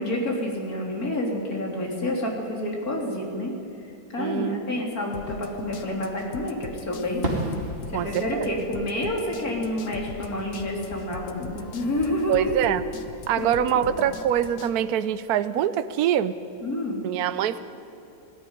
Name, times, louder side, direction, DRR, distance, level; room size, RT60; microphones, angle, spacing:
voice 1, 0.0-3.5 4.1-7.2 7.9-12.5 13.4-14.0 16.6-17.0, left 1 dB, 60° left, -1 dB, 3.9 m, -29 dB
voice 2, 4.2-4.7 7.9-8.5 12.3-12.8 13.3-16.4 17.0-17.6, right 10 dB, 70° right, 12 dB, 1.1 m, -24 dB
sound 1, 5.1-14.7, left 5 dB, 80° left, 1.7 m, -41 dB
Fireworks, 7.2-9.9 10.2-12.1, right 1 dB, 35° right, 3.0 m, -35 dB
19.0 x 15.0 x 9.7 m, 2.8 s
omnidirectional pair, 1.8 m